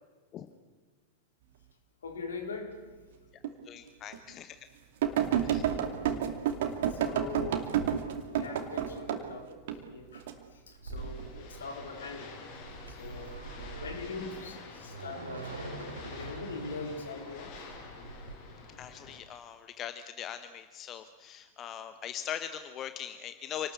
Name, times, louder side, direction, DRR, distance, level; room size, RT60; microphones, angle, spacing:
voice 1, 2.0-2.7 6.1-6.3 6.9-7.7 8.3-9.6 9.9-10.2 10.7-12.3 12.9-13.4 13.8-17.7, left 4 dB, 70° left, 5 dB, 4.1 m, -42 dB
sound 1, 3.4-3.5 4.1-4.2 5.0-9.2 9.7-10.3 11.0-11.3, right 9 dB, 55° right, 2.6 m, -29 dB
voice 2, 3.6-4.6 5.4-5.6 18.8-23.7, left 10 dB, 30° left, 10 dB, 1.2 m, -41 dB
sound 2, 10.7-18.3, right 3 dB, 75° right, 3.5 m, -44 dB
sound 3, 11.0-19.2, left 4 dB, 45° left, 5.8 m, -48 dB
28.0 x 19.5 x 8.5 m, 1.5 s
figure-of-eight pair, 90°, 0 cm